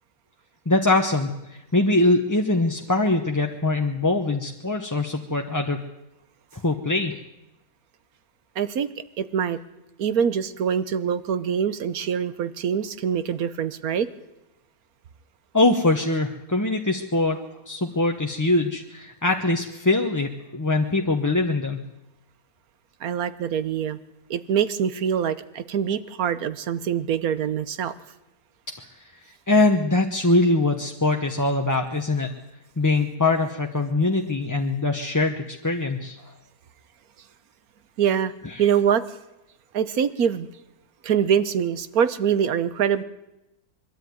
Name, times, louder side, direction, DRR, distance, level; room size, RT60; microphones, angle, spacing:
voice 1, 0.7-5.8 6.5-7.2 15.5-17.4 17.7-21.8 28.8-28.9 29.5-32.3 32.8-36.2, left 2 dB, 15° left, 2 dB, 0.8 m, -22 dB
voice 2, 8.5-8.9 9.2-9.6 10.0-14.1 23.0-24.0 24.3-27.9 38.0-38.3 38.6-39.1 39.7-40.5 41.0-43.0, right 8 dB, 70° right, 14 dB, 1.4 m, -24 dB
22.0 x 13.0 x 9.4 m, 0.94 s
omnidirectional pair, 1.6 m